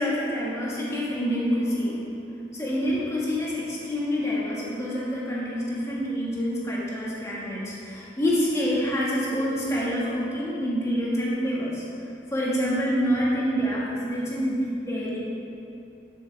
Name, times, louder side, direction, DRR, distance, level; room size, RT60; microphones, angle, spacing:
voice 1, 0.0-2.1 2.5-11.8 12.3-15.2, equal, 15° left, -6 dB, 1.8 m, -27 dB
10.0 x 7.7 x 3.5 m, 2.7 s
head